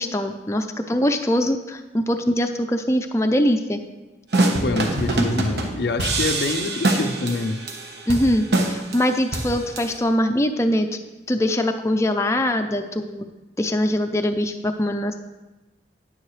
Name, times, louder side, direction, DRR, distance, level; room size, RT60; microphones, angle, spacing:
voice 1, 0.0-3.8 8.1-10.9 11.3-13.3 13.6-15.2, left 1 dB, 15° left, 5 dB, 0.5 m, -22 dB
sound 1, 4.3-10.0, right 2 dB, 70° right, 1.1 m, -24 dB
voice 2, 4.6-7.6, left 3 dB, 65° left, 8 dB, 0.5 m, -26 dB
10.0 x 9.5 x 3.2 m, 1.1 s
head